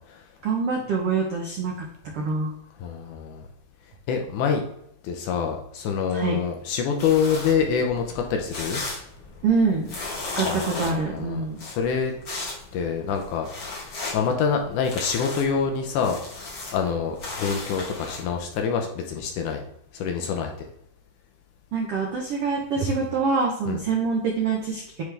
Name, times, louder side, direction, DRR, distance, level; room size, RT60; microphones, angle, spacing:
voice 1, 0.4-1.7 2.1-2.5 6.1-6.4 9.4-9.9 10.4-11.6 21.7-25.0, right 4 dB, 85° right, 0 dB, 1.3 m, -25 dB
voice 2, 2.8-3.5 4.1-4.6 5.0-8.8 10.4-12.1 12.7-16.2 16.7-19.6 19.9-20.5 23.7-23.8, left 6 dB, 75° left, 3 dB, 2.0 m, -26 dB
sound 1, 7.0-18.6, left 3 dB, 40° left, 1.9 m, -36 dB
9.4 x 3.7 x 3.3 m, 0.77 s
omnidirectional pair, 4.1 m